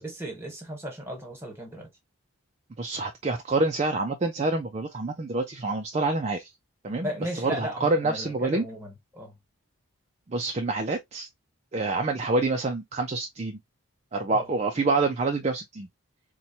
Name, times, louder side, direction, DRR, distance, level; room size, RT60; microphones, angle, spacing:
voice 1, 0.0-1.9 7.0-9.3 14.3-14.5, equal, 10° right, 1.2 m, -35 dB
voice 2, 2.8-6.5 6.8-7.1 7.4-8.6 10.3-11.3 11.7-13.6 14.1-15.9, right 3 dB, 30° right, 0.3 m, -27 dB
4.1 x 2.2 x 2.7 m
head